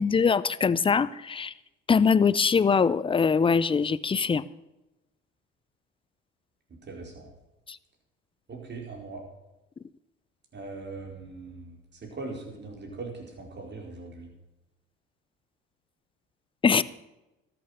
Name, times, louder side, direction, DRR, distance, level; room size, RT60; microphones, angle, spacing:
voice 1, 0.0-1.5 1.9-4.4 7.7-7.8 16.6-16.8, left 5 dB, 20° left, 18 dB, 0.5 m, -22 dB
voice 2, 6.7-7.3 8.5-9.2 10.5-14.3, right 3 dB, 35° right, 0 dB, 4.6 m, -40 dB
13.0 x 8.7 x 6.5 m, 0.98 s
supercardioid pair, 80°, 29 cm